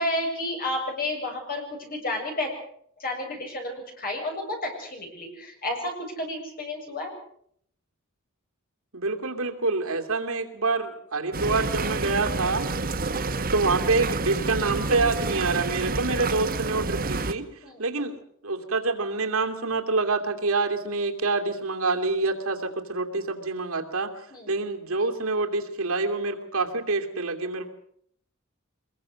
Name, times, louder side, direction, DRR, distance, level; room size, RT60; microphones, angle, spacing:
voice 1, 0.0-2.5 3.0-7.1 13.0-13.2 17.6-17.8 24.3-24.5, left 1 dB, 45° left, 2 dB, 7.5 m, -31 dB
voice 2, 8.9-12.7 13.5-17.5 17.8-24.1 24.5-27.7, right 3 dB, 70° right, 3 dB, 2.8 m, -26 dB
sound 1, 11.3-17.3, right 3 dB, 45° right, 1.3 m, -29 dB
24.0 x 22.0 x 6.5 m, 0.67 s
head